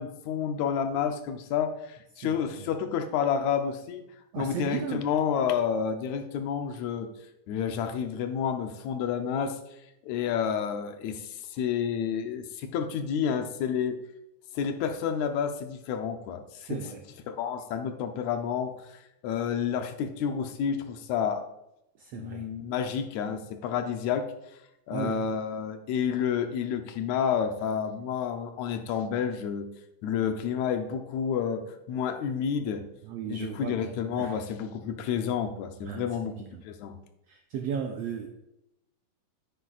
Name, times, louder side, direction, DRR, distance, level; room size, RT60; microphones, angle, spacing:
voice 1, 0.0-4.0 4.4-7.1 7.5-9.6 10.0-13.9 14.6-16.8 17.3-21.4 22.1-24.3 24.9-29.7 30.0-31.6 31.9-32.8 33.3-36.3 36.6-37.0, left 7 dB, 75° left, 6 dB, 1.9 m, -30 dB
voice 2, 2.2-2.7 4.3-5.0 16.7-17.0 22.0-22.4 24.9-25.2 33.1-33.9 34.2-34.3 35.8-36.0 36.4-36.6 37.3-38.3, right 7 dB, 85° right, 4 dB, 1.4 m, -35 dB
9.7 x 9.3 x 2.4 m, 0.86 s
omnidirectional pair, 3.7 m